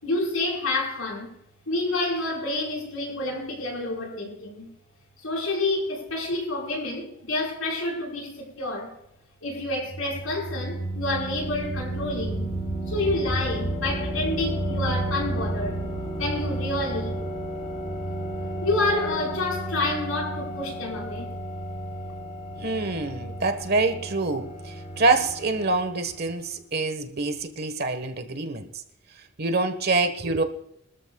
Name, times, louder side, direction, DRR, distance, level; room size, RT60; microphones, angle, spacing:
voice 1, 0.0-1.4 1.7-4.7 5.2-8.9 9.4-12.5 12.9-15.9 16.2-17.2 18.6-21.4, left 2 dB, 85° left, 4.8 m, -28 dB
sound 1, 9.5-26.2, right 1 dB, 40° left, 3.6 m, -32 dB
voice 2, 22.6-28.7 29.4-30.4, right 3 dB, 50° right, 1.4 m, -26 dB
24.0 x 13.5 x 2.4 m
head